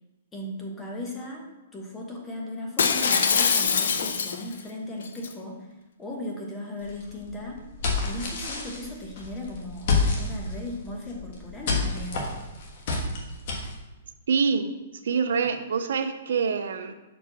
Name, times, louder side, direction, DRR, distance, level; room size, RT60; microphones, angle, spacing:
voice 1, 0.3-1.5 1.7-5.7 6.0-7.6 8.0-12.2, left 1 dB, 10° left, -1 dB, 1.1 m, -37 dB
Shatter, 2.8-4.6 5.0-5.3, left 6 dB, 80° left, 0.6 m, -23 dB
sound 1, 6.8-13.8, left 3 dB, 50° left, 1.3 m, -30 dB
voice 2, 14.3-14.7 15.0-16.9, right 5 dB, 75° right, 9 dB, 0.5 m, -25 dB
6.2 x 4.6 x 4.0 m, 1.1 s
hypercardioid pair, 155°, 0 cm